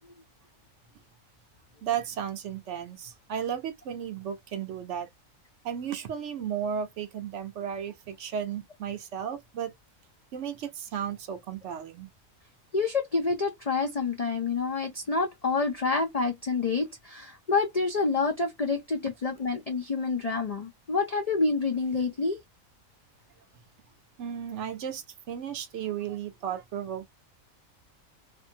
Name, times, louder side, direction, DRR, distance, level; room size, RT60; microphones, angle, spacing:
voice 1, 1.8-5.1 5.6-9.7 10.3-12.1 24.2-27.1, right 8 dB, 65° right, 0.8 m, -34 dB
voice 2, 12.7-22.4, left 4 dB, 60° left, 0.4 m, -28 dB
2.6 x 2.5 x 2.7 m
omnidirectional pair, 1.4 m